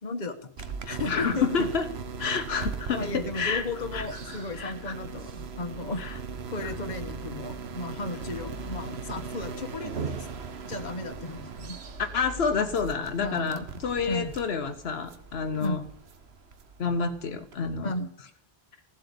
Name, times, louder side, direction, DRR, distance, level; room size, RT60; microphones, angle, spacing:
voice 1, 0.0-1.7 2.9-6.0 6.5-10.1 10.7-11.8 13.2-13.7 14.0-14.3 15.6-15.8 17.8-18.1, left 2 dB, 45° left, 6 dB, 1.3 m, -35 dB
sound 1, 0.6-17.8, right 5 dB, 90° right, 1.3 m, -39 dB
voice 2, 1.1-1.9 2.2-4.9 6.0-6.2 6.6-6.7 12.0-15.8 16.8-17.9, left 5 dB, 75° left, 8 dB, 1.1 m, -29 dB
15.5 x 7.8 x 8.5 m, 0.64 s
omnidirectional pair, 1.0 m